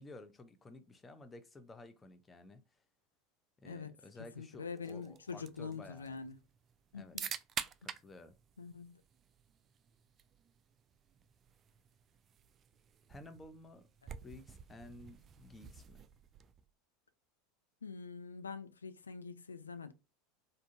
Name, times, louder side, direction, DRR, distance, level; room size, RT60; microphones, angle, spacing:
voice 1, 0.0-2.8 3.6-6.3 6.9-7.2 7.8-8.3 13.1-13.9 14.2-16.0, left 2 dB, 20° left, 0.6 m, -54 dB
voice 2, 4.4-6.4 6.9-7.3 8.6-9.0 17.8-19.9, left 5 dB, 85° left, 0.4 m, -45 dB
sound 1, 4.8-16.7, right 7 dB, 35° right, 0.3 m, -49 dB
3.6 x 2.6 x 2.7 m
figure-of-eight pair, 80°, 0 cm